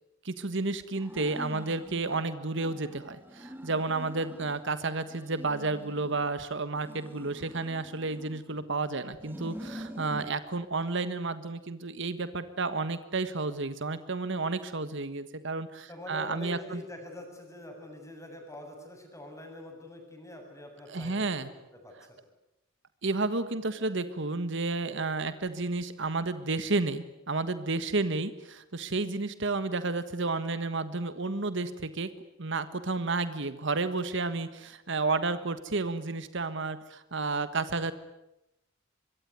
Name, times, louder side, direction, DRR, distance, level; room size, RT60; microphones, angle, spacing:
voice 1, 0.2-16.8 20.9-21.5 23.0-32.1 32.4-37.9, right 3 dB, 65° right, 12 dB, 1.5 m, -31 dB
sound 1, 0.9-2.2 2.6-4.7 5.0-6.3 6.7-8.6 9.1-10.3, equal, 10° right, 2.7 m, -46 dB
voice 2, 15.9-22.2, left 1 dB, 15° left, 3 dB, 7.5 m, -45 dB
25.0 x 23.0 x 9.5 m, 0.90 s
head